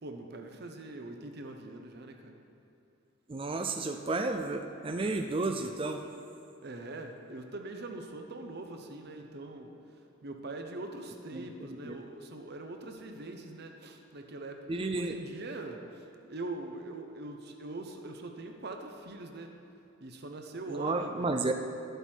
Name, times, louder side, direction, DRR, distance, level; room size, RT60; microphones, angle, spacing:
voice 1, 0.0-2.4 6.6-9.7 10.2-19.6 20.0-21.4, right 2 dB, 50° right, 4 dB, 0.8 m, -42 dB
voice 2, 3.3-6.0 11.3-12.0 14.7-15.1 20.7-21.5, right 3 dB, 25° right, 5 dB, 0.4 m, -32 dB
13.0 x 8.0 x 4.5 m, 2.7 s
head